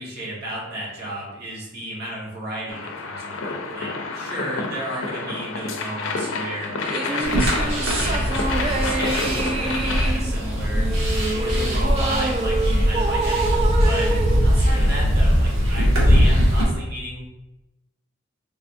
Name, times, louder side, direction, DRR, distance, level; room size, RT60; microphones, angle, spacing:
voice 1, 0.0-6.7 7.0-10.9 11.2-14.1 14.4-17.2, right 1 dB, 50° right, -5 dB, 1.2 m, -33 dB
sound 1, 2.7-10.1, left 3 dB, 75° left, 0.5 m, -29 dB
sound 2, 6.8-15.4, right 3 dB, 30° right, 0.3 m, -27 dB
sound 3, 7.2-16.6, equal, 85° right, 1.2 m, -20 dB
3.4 x 3.3 x 2.6 m, 0.99 s
head